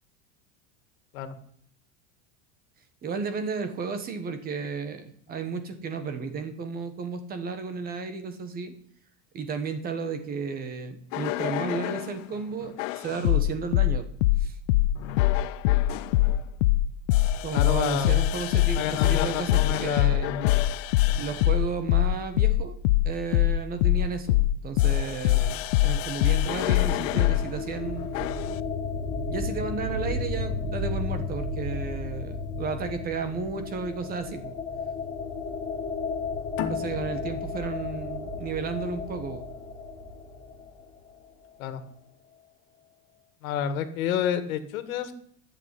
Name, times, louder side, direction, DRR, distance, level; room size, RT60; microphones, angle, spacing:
voice 1, 3.0-8.7 9.3-14.1 14.4-14.6 17.4-20.3 21.2-22.8 23.0-28.1 29.3-34.5 36.7-39.5, right 5 dB, 20° right, 9 dB, 1.4 m, -33 dB
sound 1, 11.1-12.1 12.8-27.5 28.1-28.5, left 15 dB, 65° left, 0.7 m, -23 dB
voice 2, 17.5-18.1 18.7-20.5 21.1-21.2 41.6-41.8 43.4-45.1, left 8 dB, 85° left, 10 dB, 2.0 m, -29 dB
sound 2, 26.3-40.9, left 3 dB, 15° left, 1.7 m, -33 dB
sound 3, 36.6-39.8, left 9 dB, 30° left, 1.2 m, -37 dB
12.0 x 7.1 x 9.8 m, 0.64 s
supercardioid pair, 170°, 40 cm